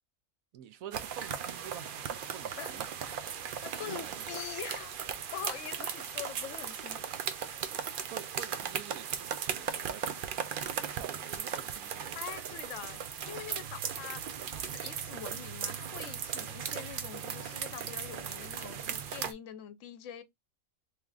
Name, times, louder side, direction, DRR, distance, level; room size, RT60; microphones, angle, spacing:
voice 1, 0.5-2.9 4.0-4.3 7.8-10.2 10.6-12.1, right 10 dB, 90° right, 1.0 m, -48 dB
sound 1, 0.9-19.3, right 8 dB, 70° right, 0.5 m, -37 dB
voice 2, 3.6-4.9 5.3-7.0 12.1-20.2, left 10 dB, 70° left, 1.0 m, -44 dB
3.2 x 2.4 x 3.4 m
omnidirectional pair, 1.4 m